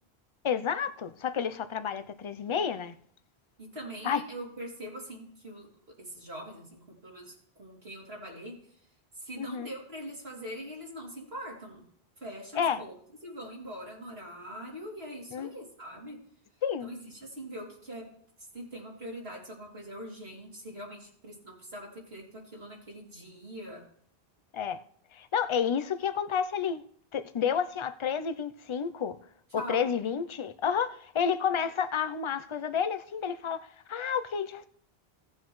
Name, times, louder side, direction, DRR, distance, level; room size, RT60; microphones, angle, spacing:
voice 1, 0.4-3.0 4.0-4.2 9.4-9.7 12.6-12.8 15.3-15.5 16.6-16.9 24.5-24.8 25.1-26.8 27.1-29.2 29.5-34.7, left 7 dB, 40° left, 0.5 m, -30 dB
voice 2, 3.6-8.9 9.1-11.8 12.2-12.9 13.2-16.2 16.8-23.9 29.5-29.9, equal, 75° right, 3.2 m, -43 dB
17.0 x 7.4 x 3.1 m
omnidirectional pair, 1.0 m